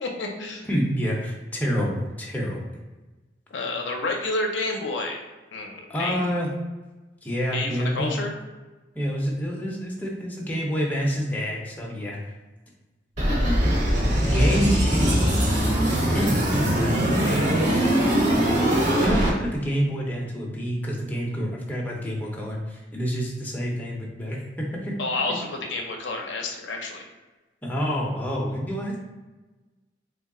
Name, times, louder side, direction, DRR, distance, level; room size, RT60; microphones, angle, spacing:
voice 1, 0.0-0.7 3.5-5.2 5.5-6.2 7.5-8.3 17.2-18.2 25.0-27.0, left 2 dB, 75° left, 2 dB, 0.5 m, -30 dB
voice 2, 0.7-2.6 5.9-6.5 7.2-8.2 9.0-12.2 13.3-14.0 14.3-15.2 16.1-16.4 19.0-24.9 27.6-29.0, equal, 10° left, -3 dB, 0.5 m, -27 dB
sound 1, 13.2-19.3, equal, 40° right, 0.8 m, -21 dB
3.1 x 2.3 x 3.6 m, 1.2 s
head